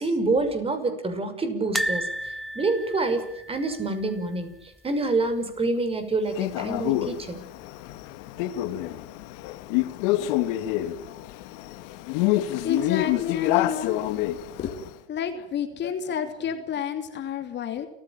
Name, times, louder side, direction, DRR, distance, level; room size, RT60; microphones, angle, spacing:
voice 1, 0.0-7.4, right 3 dB, 20° right, 8 dB, 6.0 m, -27 dB
sound 1, 1.7-4.8 5.1-5.3 5.5-5.6 6.9-7.4 7.9-8.0, equal, ahead, 0.9 m, -33 dB
Male speech man speaking, 6.3-14.9, left 15 dB, 60° left, 2.2 m, -27 dB
voice 2, 12.6-14.3 14.6-17.9, left 7 dB, 35° left, 7 dB, 2.8 m, -30 dB
29.5 x 15.5 x 9.1 m, 0.76 s
hypercardioid pair, 105°, 29 cm